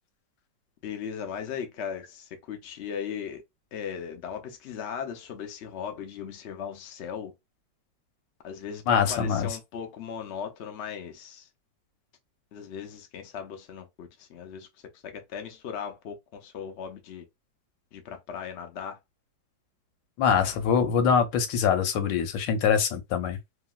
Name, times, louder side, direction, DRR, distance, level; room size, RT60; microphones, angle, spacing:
voice 1, 0.8-3.4 3.7-7.3 8.4-11.5 12.5-14.7 15.0-17.2 17.9-19.0, left 7 dB, 65° left, 0.6 m, -37 dB
voice 2, 8.9-9.5 20.2-23.4, left 7 dB, 90° left, 1.4 m, -24 dB
3.0 x 2.6 x 2.3 m
omnidirectional pair, 2.0 m